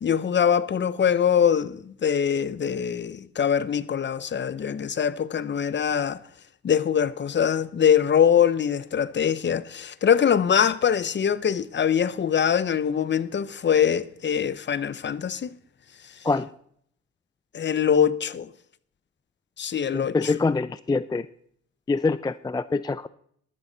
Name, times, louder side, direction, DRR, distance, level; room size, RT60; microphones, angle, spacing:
voice 1, 0.0-6.2 6.6-15.5 17.5-18.5 19.6-20.3, left 8 dB, 40° left, 0.7 m, -23 dB
voice 2, 19.9-21.3 21.9-23.1, left 3 dB, 15° left, 0.4 m, -25 dB
13.0 x 13.0 x 4.0 m
cardioid pair, 90°, 30 cm